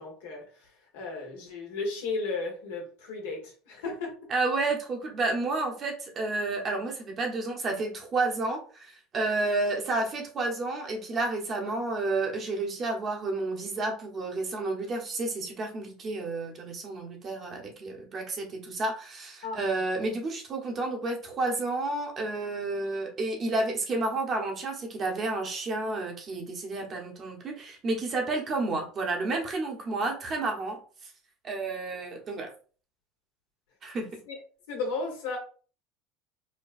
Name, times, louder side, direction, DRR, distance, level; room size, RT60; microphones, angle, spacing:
voice 1, 0.0-4.1 19.4-19.7 34.3-34.4 34.7-35.4, left 3 dB, 80° left, 1.2 m, -35 dB
voice 2, 4.3-31.1 31.4-32.5 33.8-34.1, right 2 dB, 40° right, 1.0 m, -31 dB
4.3 x 2.2 x 2.5 m
supercardioid pair, 90°, 0 cm